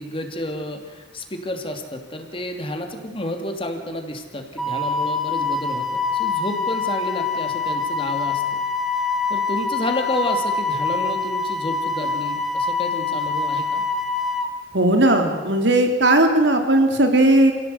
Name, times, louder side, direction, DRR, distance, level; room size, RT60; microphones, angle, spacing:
voice 1, 0.0-8.4 9.3-13.8, left 1 dB, 30° left, 4 dB, 2.9 m, -30 dB
Wind instrument woodwind instrument, 4.6-14.5, left 4 dB, ahead, 1.8 m, -25 dB
voice 2, 14.7-17.5, right 1 dB, 80° right, 5 dB, 3.4 m, -17 dB
27.5 x 17.0 x 8.1 m, 1.3 s
head